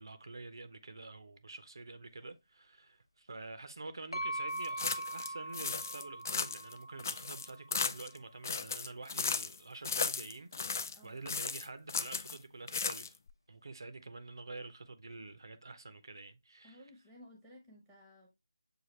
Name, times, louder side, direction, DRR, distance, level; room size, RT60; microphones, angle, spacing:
voice 1, 0.0-13.2 13.5-16.8, right 3 dB, 65° right, 0.5 m, -48 dB
sound 1, 4.1-7.9, right 1 dB, 85° left, 1.0 m, -41 dB
sound 2, 4.6-5.3 5.5-6.7 7.0-8.2 8.4-9.6 9.8-11.0 11.3-12.4 12.7-13.3, left 5 dB, 40° left, 0.3 m, -36 dB
voice 2, 10.9-11.4 16.6-18.3, left 1 dB, ahead, 0.8 m, -57 dB
6.4 x 2.4 x 3.1 m
figure-of-eight pair, 160°, 2 cm